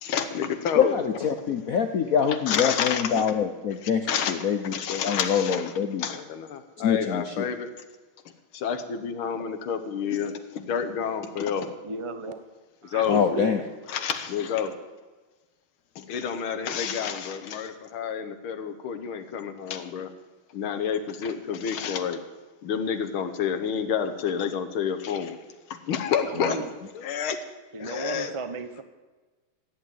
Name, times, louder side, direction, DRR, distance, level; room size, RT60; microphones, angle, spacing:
voice 1, 0.0-0.9 2.5-3.2 3.8-4.4 4.7-5.6 6.0-7.7 8.5-11.7 12.9-13.4 13.9-14.7 16.0-20.1 20.5-22.2 22.6-25.4 25.9-26.6 27.0-27.4 27.8-28.3, left 7 dB, 80° left, 7 dB, 2.0 m, -29 dB
voice 2, 0.8-6.1 6.8-7.5 13.1-13.6 26.4-26.5, left 7 dB, 55° left, 7 dB, 1.0 m, -25 dB
voice 3, 11.8-12.4 12.8-13.5 26.2-26.7 27.7-28.8, right 3 dB, 40° right, 10 dB, 0.4 m, -34 dB
14.5 x 9.0 x 9.4 m, 1.3 s
omnidirectional pair, 2.3 m